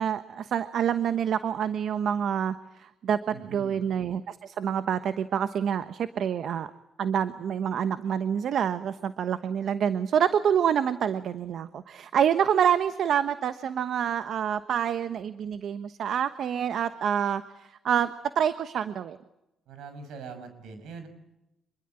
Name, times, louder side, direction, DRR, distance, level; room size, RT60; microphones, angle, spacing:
voice 1, 0.0-6.7 7.0-18.1 18.3-19.2, right 8 dB, 65° right, 11 dB, 1.1 m, -27 dB
voice 2, 3.3-3.8 19.7-21.1, right 5 dB, 80° right, 8 dB, 6.4 m, -42 dB
26.0 x 22.5 x 8.9 m, 0.89 s
cardioid pair, 90°, 0 cm